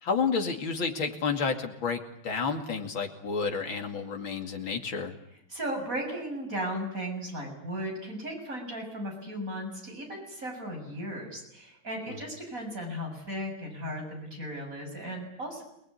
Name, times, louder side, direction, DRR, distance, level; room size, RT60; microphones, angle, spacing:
voice 1, 0.0-5.1 12.1-12.2, left 5 dB, 85° left, 4 dB, 3.3 m, -30 dB
voice 2, 5.5-15.6, equal, 40° right, 2 dB, 8.0 m, -36 dB
28.0 x 20.0 x 9.7 m, 0.76 s
omnidirectional pair, 2.1 m